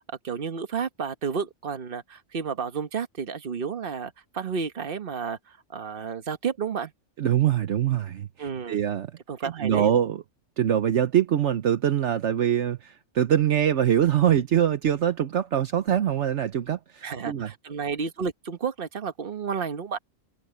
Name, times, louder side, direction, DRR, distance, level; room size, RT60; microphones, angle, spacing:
voice 1, 0.2-6.9 8.4-8.8 9.3-9.9 17.0-20.0, right 6 dB, 45° right, 1.3 m, -31 dB
voice 2, 7.2-9.1 9.4-10.2 10.6-17.5, right 10 dB, 65° right, 1.1 m, -24 dB
omnidirectional pair, 1.3 m